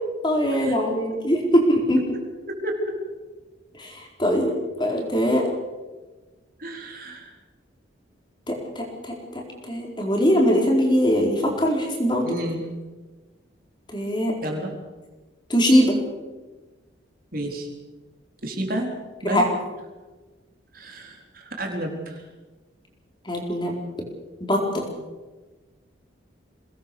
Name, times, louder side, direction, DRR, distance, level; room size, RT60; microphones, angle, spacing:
voice 1, 0.2-2.0 3.8-4.5 4.8-5.5 8.5-9.1 9.7-12.2 13.9-14.3 15.5-15.9 19.2-19.5 23.3-23.8 24.5-24.8, equal, 25° left, 0 dB, 4.3 m, -21 dB
voice 2, 2.5-2.9 6.6-7.3 12.2-12.6 14.4-14.7 17.3-17.7 18.4-18.9 19.2-19.4 20.7-22.2, right 1 dB, 45° right, 1 dB, 4.2 m, -31 dB
23.0 x 19.5 x 6.9 m, 1.2 s
head